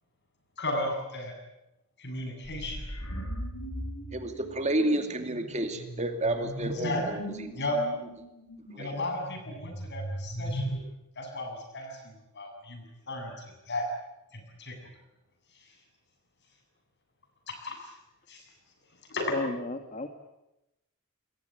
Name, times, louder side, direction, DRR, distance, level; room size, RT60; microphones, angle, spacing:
voice 1, 0.6-1.3 2.0-2.9 6.7-7.0 7.5-7.8 8.8-10.8 11.2-13.9 14.3-14.8 15.5-15.7 17.5-17.9 18.3-18.4 19.1-19.3, left 1 dB, 55° left, 4 dB, 7.9 m, -35 dB
sound 1, 2.5-10.8, equal, 90° left, 7.6 m, -38 dB
voice 2, 4.1-7.6 8.7-8.9, right 1 dB, 30° right, 6 dB, 2.5 m, -30 dB
voice 3, 19.3-20.1, left 2 dB, 35° left, 7 dB, 1.8 m, -33 dB
28.0 x 22.0 x 9.0 m, 0.93 s
head